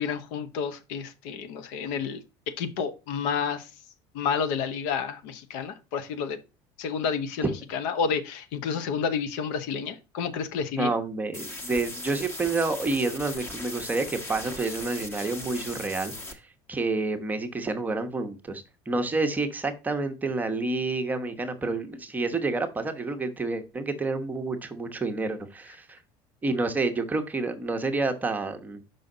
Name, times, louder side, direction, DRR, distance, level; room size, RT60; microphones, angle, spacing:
voice 1, 0.0-2.2 2.6-3.7 4.1-6.4 6.8-10.9, left 6 dB, 80° left, 0.9 m, -30 dB
voice 2, 10.8-16.4 16.7-26.0 26.4-28.8, right 3 dB, 15° right, 1.0 m, -29 dB
sound 1, 11.3-16.3, left 2 dB, 20° left, 1.3 m, -38 dB
5.5 x 5.4 x 3.8 m
cardioid pair, 130°, 12 cm